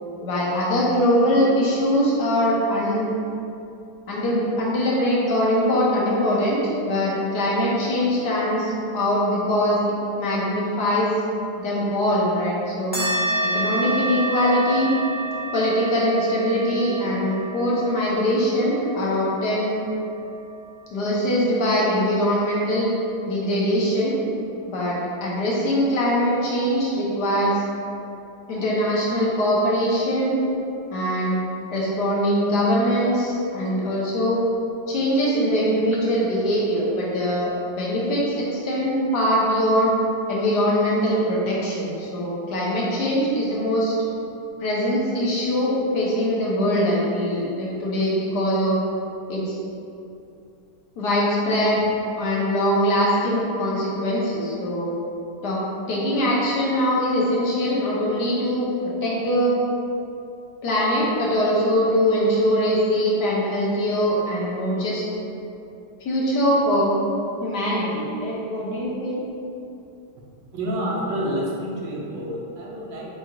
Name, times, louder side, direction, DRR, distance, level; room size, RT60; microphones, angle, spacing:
voice 1, 0.2-3.1 4.1-9.8 10.2-11.1 11.6-13.0 13.4-14.9 15.5-19.8 20.9-22.9 23.3-24.2 24.7-27.6 28.5-30.3 30.9-31.4 31.7-34.4 34.9-37.5 37.8-39.9 40.3-43.9 44.6-48.8 49.3-49.6 51.0-51.8 52.2-54.9 55.4-58.7 59.0-59.6 60.6-65.0 66.0-66.9 67.4-69.2, equal, 70° left, -5 dB, 1.5 m, -22 dB
sound 1, 12.9-21.8, right 2 dB, 5° left, 1.1 m, -30 dB
voice 2, 70.5-73.1, equal, 90° right, -4 dB, 1.5 m, -28 dB
7.4 x 2.9 x 2.4 m, 2.7 s
omnidirectional pair, 1.9 m